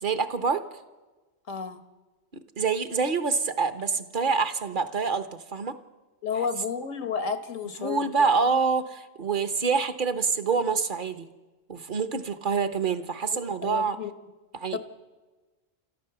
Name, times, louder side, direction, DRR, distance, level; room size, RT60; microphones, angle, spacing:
voice 1, 0.0-0.8 2.3-5.8 7.8-11.3 11.7-14.0 14.5-14.8, right 5 dB, 45° right, 11 dB, 1.1 m, -26 dB
voice 2, 1.5-1.8 6.2-8.1 13.3-14.1 14.7-14.8, left 6 dB, 85° left, 9 dB, 1.7 m, -32 dB
29.5 x 14.0 x 6.8 m, 1.2 s
omnidirectional pair, 1.3 m